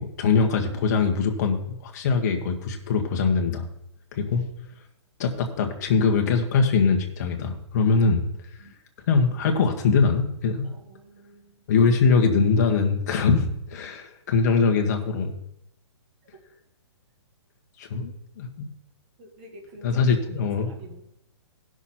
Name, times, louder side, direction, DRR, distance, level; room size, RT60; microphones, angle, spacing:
voice 1, 0.0-3.7 4.1-4.4 5.2-8.2 9.1-10.7 11.7-15.3 17.8-18.5 19.8-20.7, left 5 dB, 40° left, 3 dB, 1.4 m, -22 dB
voice 2, 10.7-11.7 19.2-20.0 20.4-21.0, right 1 dB, 25° right, -1 dB, 2.0 m, -48 dB
16.0 x 6.2 x 4.3 m, 0.79 s
hypercardioid pair, 170°, 15 cm